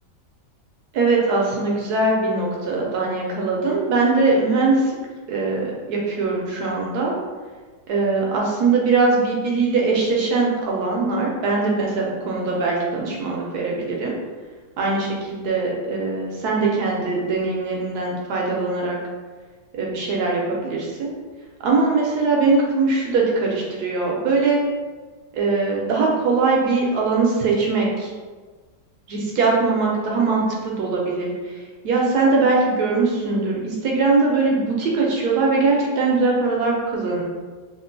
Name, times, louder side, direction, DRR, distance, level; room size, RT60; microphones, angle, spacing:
voice 1, 0.9-5.0 5.3-7.1 7.9-14.1 14.8-19.0 19.8-21.1 21.6-24.6 25.3-28.1 29.1-31.3 31.8-37.2, right 3 dB, 70° right, -2 dB, 1.0 m, -21 dB
3.5 x 2.4 x 2.6 m, 1.4 s
omnidirectional pair, 1.9 m